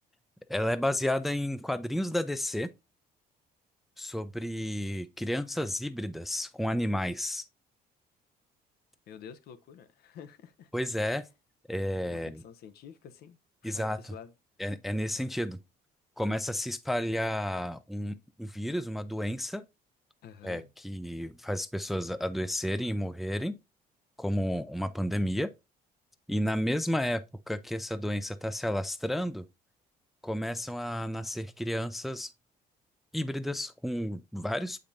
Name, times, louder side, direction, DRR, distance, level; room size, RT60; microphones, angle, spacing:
voice 1, 0.5-2.7 4.0-7.4 10.7-11.2 11.7-12.4 13.6-14.1 14.6-15.6 16.2-19.6 20.4-23.6 24.2-25.5 26.3-29.5 30.2-32.3 33.1-34.8, equal, ahead, 0.4 m, -31 dB
voice 2, 9.1-10.7 11.1-11.2 12.1-13.4 13.6-14.3 20.2-20.7, left 7 dB, 70° left, 0.7 m, -49 dB
7.1 x 5.1 x 2.6 m
cardioid pair, 110°, 17 cm